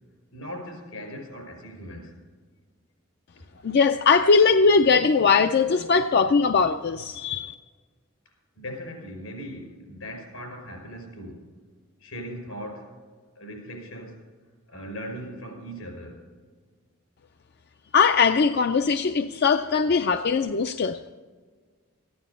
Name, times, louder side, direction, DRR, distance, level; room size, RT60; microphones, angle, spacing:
voice 1, 0.3-2.2 3.4-3.5 8.6-11.4 12.0-13.0 13.4-14.2 14.7-16.2, equal, 80° left, 5.2 m, -39 dB
voice 2, 3.6-7.5 17.9-21.0, left 5 dB, 50° left, 0.4 m, -20 dB
15.5 x 9.5 x 6.8 m
head